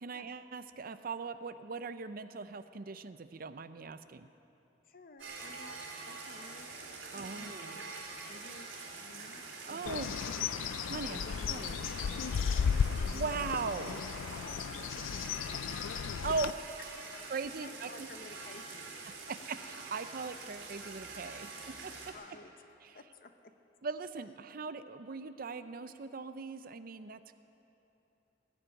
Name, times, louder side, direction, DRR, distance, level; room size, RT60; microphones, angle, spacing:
voice 1, 0.0-4.3 7.1-7.8 9.7-10.2 10.9-11.8 13.1-14.0 16.2-16.6 17.3-18.1 19.5-21.5 21.8-21.9 23.8-27.2, right 4 dB, 50° right, 11 dB, 0.5 m, -39 dB
voice 2, 4.8-6.9 7.1-7.9 8.2-10.3 11.0-13.1 14.3-16.4 17.3-19.3 22.1-22.5 22.9-23.5, left 2 dB, 50° left, 7 dB, 0.9 m, -54 dB
sound 1, 5.2-22.1, right 3 dB, 90° right, 3.3 m, -46 dB
Bird, 9.9-16.5, left 7 dB, 85° left, 0.4 m, -34 dB
18.0 x 8.0 x 10.0 m, 3.0 s
head